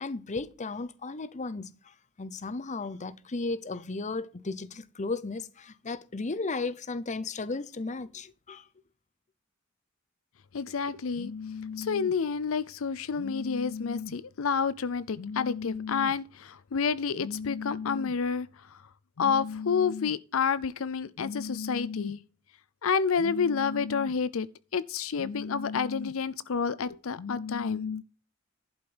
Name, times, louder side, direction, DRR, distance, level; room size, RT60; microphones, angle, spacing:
voice 1, 0.0-8.6, left 3 dB, 35° left, 0.7 m, -35 dB
voice 2, 10.5-18.5 19.2-22.2 22.8-24.5 24.7-28.0, left 6 dB, 75° left, 0.5 m, -29 dB
11.5 x 5.3 x 6.0 m
head